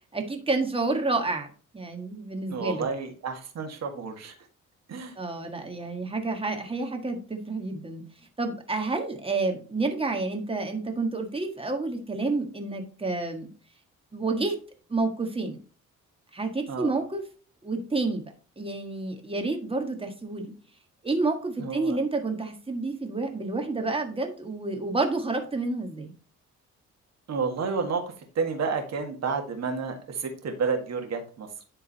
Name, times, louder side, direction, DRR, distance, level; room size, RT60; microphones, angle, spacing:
voice 1, 0.1-1.5 1.7-2.9 5.2-8.0 8.4-13.5 14.1-14.6 14.9-15.6 16.3-17.3 17.6-18.2 18.6-20.5 21.0-26.1, right 3 dB, 20° right, 4 dB, 1.6 m, -29 dB
voice 2, 2.5-4.3 4.9-5.1 16.7-16.9 21.6-22.0 27.3-28.0 28.4-31.5, right 5 dB, 60° right, 4 dB, 1.8 m, -30 dB
10.0 x 3.8 x 4.1 m, 0.40 s
cardioid pair, 90°, 30 cm